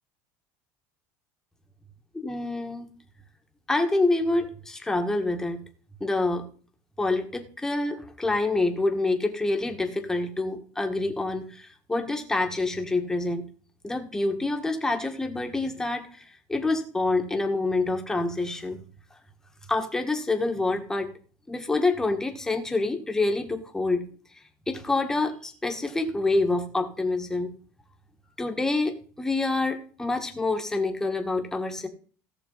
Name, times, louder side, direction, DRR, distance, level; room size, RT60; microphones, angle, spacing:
voice 1, 2.1-2.9 3.7-5.6 6.0-6.4 7.0-13.4 13.8-18.8 19.7-21.1 21.5-24.1 24.7-27.5 28.4-31.9, left 2 dB, 10° left, 4 dB, 1.5 m, -27 dB
17.5 x 6.6 x 4.0 m, 0.42 s
cardioid pair, 140°, 6 cm